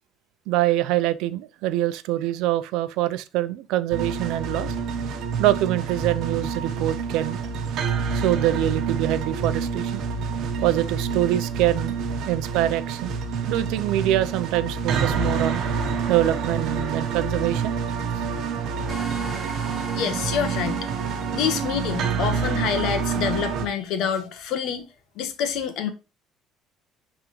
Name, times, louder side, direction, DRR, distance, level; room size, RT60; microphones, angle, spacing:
voice 1, 0.5-4.7 5.4-7.4 8.1-10.0 10.6-12.0 12.3-13.2 13.4-15.7 16.1-17.7, right 14 dB, 75° right, 0.5 m, -24 dB
sound 1, 3.9-23.7, right 5 dB, 55° right, 1.1 m, -27 dB
sound 2, 18.9-22.0, right 1 dB, ahead, 1.9 m, -40 dB
voice 2, 19.9-20.9 21.3-24.8 25.2-25.9, left 7 dB, 65° left, 1.3 m, -27 dB
11.0 x 3.7 x 3.1 m
cardioid pair, 155°, 0 cm